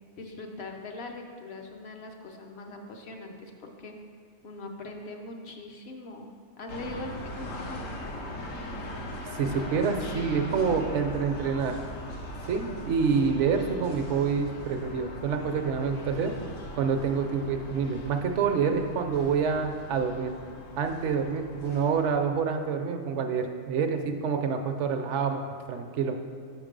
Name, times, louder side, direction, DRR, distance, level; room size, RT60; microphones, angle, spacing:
voice 1, 0.2-3.9 4.4-6.3 6.6-8.0, left 2 dB, 55° left, 3 dB, 1.0 m, -41 dB
sound 1, 6.7-22.1, equal, 70° left, 1.3 m, -40 dB
voice 2, 9.3-11.8 12.5-16.3 16.8-20.3 20.8-25.4 25.7-26.1, right 6 dB, 65° right, 5 dB, 0.9 m, -27 dB
6.7 x 5.3 x 5.1 m, 2.1 s
omnidirectional pair, 1.4 m